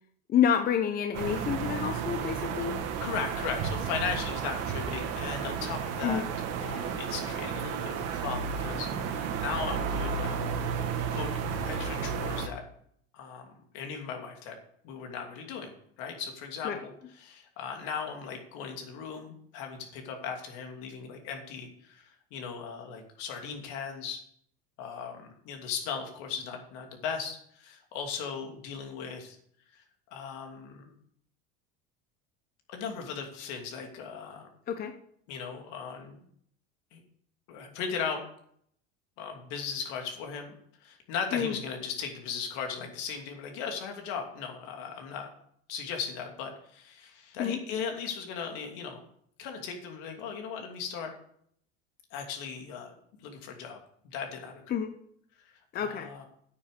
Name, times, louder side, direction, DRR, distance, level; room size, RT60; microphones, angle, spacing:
voice 1, 0.3-2.8 6.0-6.3 16.6-16.8 34.7-34.9 41.3-41.6 47.4-47.6 54.7-54.9 55.7-56.1, left 8 dB, 30° left, 7 dB, 0.8 m, -28 dB
sound 1, 1.1-12.5, right 6 dB, 55° right, 1.7 m, -32 dB
voice 2, 3.0-6.2 6.6-10.3 11.1-12.6 13.1-14.6 14.8-24.2 24.8-29.4 29.7-29.8 30.1-30.9 32.7-34.5 35.3-36.2 36.9-37.0 37.5-38.2 39.2-40.5 40.8-45.3 45.7-49.0 49.4-51.1 52.1-52.9 53.2-53.8 54.1-54.6 55.4-56.3, left 6 dB, 70° left, 3 dB, 2.8 m, -37 dB
9.3 x 6.8 x 6.7 m, 0.66 s
supercardioid pair, 135°, 29 cm